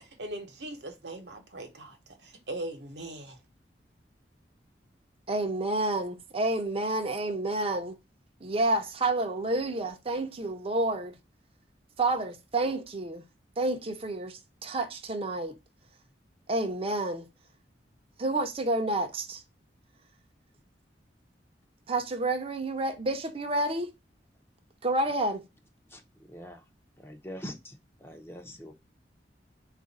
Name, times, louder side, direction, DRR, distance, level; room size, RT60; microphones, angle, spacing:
voice 1, 0.0-3.4, right 1 dB, 70° right, 1.0 m, -40 dB
voice 2, 5.3-8.0 8.4-11.2 12.0-13.2 13.6-15.6 16.5-17.2 18.2-19.4 21.9-23.9 24.8-25.4, right 2 dB, 35° right, 0.7 m, -29 dB
voice 3, 26.3-26.6 27.0-28.7, equal, 15° left, 0.6 m, -43 dB
4.2 x 2.5 x 4.0 m
head